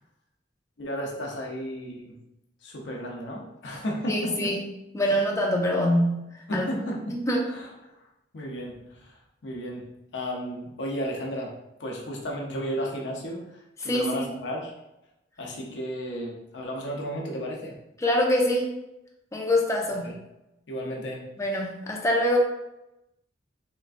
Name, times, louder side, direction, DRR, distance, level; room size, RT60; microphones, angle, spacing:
voice 1, 0.8-2.2 2.6-4.5 5.1-5.2 6.5-7.2 7.5-7.7 8.3-9.1 9.4-11.5 11.8-14.7 15.4-17.7 20.0-20.1 20.7-21.2, equal, 75° left, -1 dB, 0.7 m, -33 dB
voice 2, 4.1-4.6 4.9-6.2 6.5-6.7 7.1-7.5 13.8-14.2 18.0-18.7 19.3-20.2 21.4-22.4, left 1 dB, 15° left, 0 dB, 0.5 m, -24 dB
3.4 x 3.0 x 2.5 m, 0.91 s
head